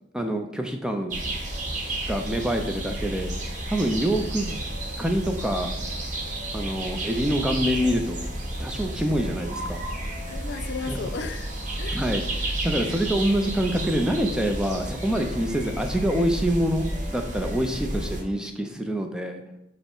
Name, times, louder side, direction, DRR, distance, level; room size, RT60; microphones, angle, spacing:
voice 1, 0.1-1.2 2.1-3.3 3.7-4.6 5.0-5.7 6.5-8.2 8.6-9.8 10.9-11.0 11.9-19.4, equal, 5° right, 5 dB, 0.3 m, -26 dB
sound 1, 1.1-18.2, right 1 dB, 45° right, 0.8 m, -31 dB
voice 2, 10.3-12.0, left 4 dB, 70° left, 9 dB, 0.4 m, -35 dB
5.5 x 2.1 x 4.4 m, 0.84 s
head